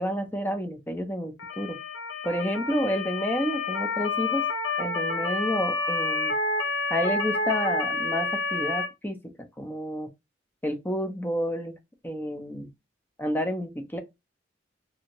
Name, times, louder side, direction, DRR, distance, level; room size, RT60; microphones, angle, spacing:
voice 1, 0.0-1.8 2.2-4.4 4.8-6.3 6.9-9.2 9.6-10.1 10.6-11.7 12.0-12.7 13.2-14.0, equal, 10° left, 0.5 m, -30 dB
Motor vehicle (road) / Siren, 1.4-8.9, left 3 dB, 85° left, 0.7 m, -29 dB
2.7 x 2.6 x 2.9 m
head